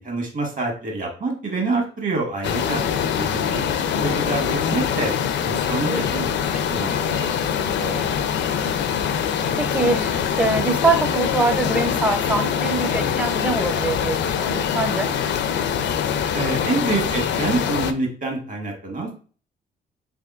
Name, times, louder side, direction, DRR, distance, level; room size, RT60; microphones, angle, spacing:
voice 1, 0.0-2.8 3.1-3.4 3.7-5.1 5.4-6.0 6.7-7.3 16.3-19.1, right 3 dB, 40° right, 1 dB, 1.5 m, -26 dB
sound 1, 2.4-17.9, left 8 dB, 65° left, 0.5 m, -23 dB
voice 2, 5.9-6.6 7.8-8.1 8.5-8.9 9.5-15.1, right 3 dB, 5° right, 6 dB, 0.5 m, -24 dB
3.7 x 3.4 x 2.4 m, 0.39 s
cardioid pair, 90°, 20 cm